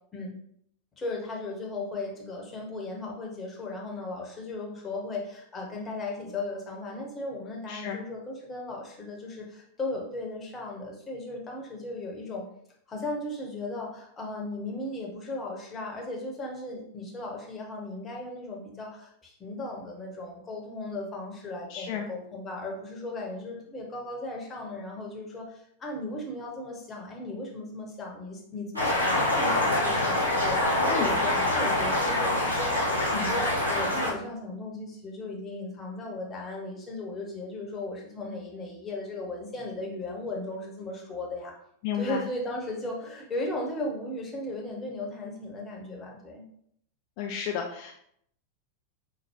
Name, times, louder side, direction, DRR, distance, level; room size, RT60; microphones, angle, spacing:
voice 1, 1.0-12.5 12.9-30.6 31.0-41.5 41.9-46.4, left 2 dB, 20° left, -1 dB, 0.9 m, -36 dB
voice 2, 7.7-8.0 21.7-22.1 30.9-31.1 41.8-42.2 47.2-47.9, left 8 dB, 45° left, 1 dB, 0.3 m, -32 dB
sound 1, 28.8-34.1, left 1 dB, 90° right, 0.9 m, -25 dB
4.4 x 2.3 x 2.9 m, 0.69 s
figure-of-eight pair, 90°, 0 cm